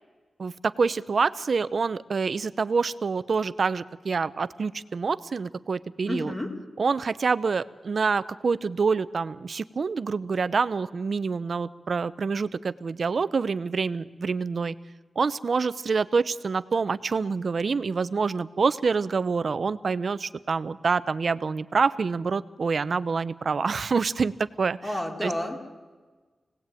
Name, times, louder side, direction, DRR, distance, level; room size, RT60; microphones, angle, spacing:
voice 1, 0.4-6.3 6.8-14.7 15.2-24.3 24.6-24.8 25.2-25.3, right 5 dB, 50° right, 14 dB, 0.8 m, -26 dB
voice 2, 6.1-6.5 24.8-25.6, left 1 dB, 15° left, 1 dB, 4.0 m, -30 dB
27.5 x 18.5 x 9.1 m, 1.3 s
wide cardioid pair, 165°, 0 cm